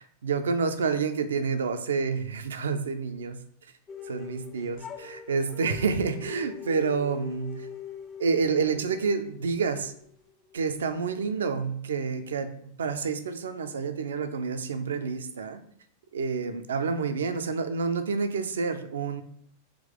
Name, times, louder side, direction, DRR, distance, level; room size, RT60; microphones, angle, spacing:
voice 1, 0.0-3.4 4.1-7.7 8.2-9.9 10.5-15.6 16.1-19.2, right 5 dB, 65° right, 10 dB, 0.4 m, -29 dB
sound 1, 3.9-10.8, left 8 dB, 30° left, 0.5 m, -42 dB
3.6 x 2.8 x 3.6 m, 0.66 s
figure-of-eight pair, 90°, 0 cm